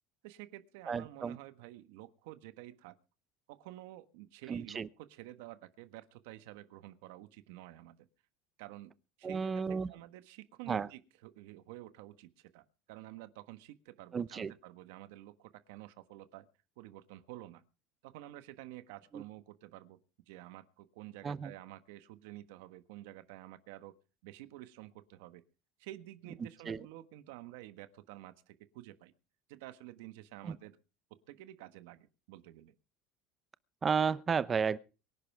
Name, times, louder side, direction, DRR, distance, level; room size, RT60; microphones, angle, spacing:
voice 1, 0.2-3.0 3.5-8.0 8.6-8.9 9.2-16.5 16.8-17.6 18.0-20.0 20.3-23.9 24.2-25.4 25.8-29.1 29.5-30.8 31.3-32.7, right 15 dB, 80° right, 1.4 m, -50 dB
voice 2, 0.9-1.4 4.5-4.9 9.2-9.9 10.7-10.9 14.1-14.5 19.1-19.2 21.2-21.5 26.7-26.8 30.4-30.5 33.8-34.8, right 6 dB, 20° right, 0.7 m, -32 dB
24.0 x 11.0 x 3.5 m
cardioid pair, 155°, 0 cm